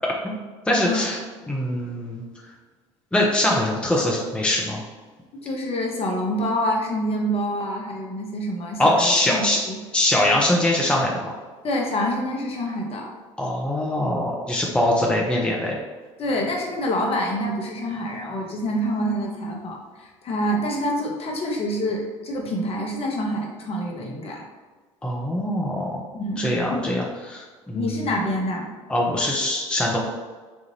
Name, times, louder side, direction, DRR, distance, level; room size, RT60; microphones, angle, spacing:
voice 1, 0.7-1.2 1.5-2.2 3.1-4.8 8.8-9.6 9.9-11.3 13.4-15.7 25.0-26.0 26.4-28.0 28.9-30.0, left 1 dB, 5° left, -2 dB, 0.6 m, -22 dB
voice 2, 5.3-9.8 11.6-13.1 16.2-24.4 26.1-26.9 27.7-28.7, equal, 40° left, 0 dB, 0.9 m, -27 dB
4.2 x 2.4 x 3.2 m, 1.3 s
hypercardioid pair, 65°, 16 cm